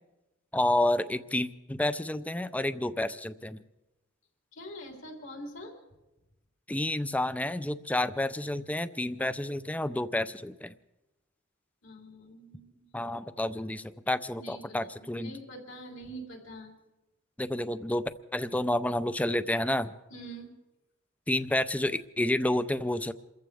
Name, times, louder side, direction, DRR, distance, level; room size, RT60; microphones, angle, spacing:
voice 1, 0.5-3.6 6.7-10.7 12.9-15.3 17.4-19.9 21.3-23.1, left 1 dB, 5° left, 13 dB, 0.4 m, -30 dB
voice 2, 4.5-5.8 11.8-12.9 14.4-16.7 20.1-20.5, right 1 dB, 65° left, 1 dB, 3.6 m, -44 dB
28.0 x 14.5 x 3.4 m, 1.0 s
head